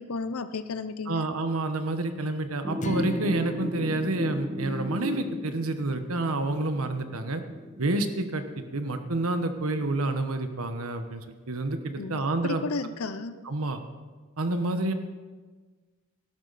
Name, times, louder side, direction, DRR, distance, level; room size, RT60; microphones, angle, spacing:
voice 1, 0.0-1.2 12.0-13.4, left 4 dB, 85° left, 12 dB, 0.7 m, -33 dB
voice 2, 1.1-7.4 7.8-12.6 13.4-13.8 14.4-14.9, right 2 dB, 80° right, 8 dB, 1.2 m, -29 dB
sound 1, 2.6-10.2, equal, 10° right, 0.6 m, -37 dB
sound 2, 2.8-7.2, left 2 dB, 35° left, 0.6 m, -39 dB
19.0 x 12.0 x 4.2 m, 1.4 s
head